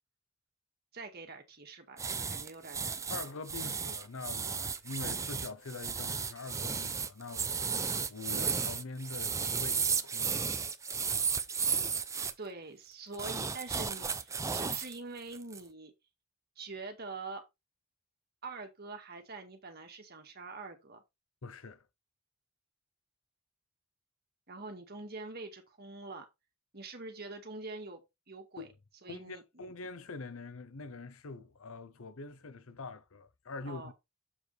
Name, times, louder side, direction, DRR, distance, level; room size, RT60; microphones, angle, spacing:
voice 1, 0.9-3.1 12.4-15.9 16.6-17.4 18.4-21.0 24.5-26.3 26.7-28.0 28.3-28.7 29.0-29.7 33.7-33.9, right 3 dB, 45° right, 1.9 m, -45 dB
sound 1, 2.0-12.3 13.1-15.0 15.3-15.6, right 5 dB, 15° right, 0.4 m, -34 dB
voice 2, 3.1-7.7 8.1-10.4 21.4-21.8 28.6-28.7 29.1-33.9, left 3 dB, 75° left, 0.8 m, -44 dB
7.2 x 6.2 x 3.4 m
head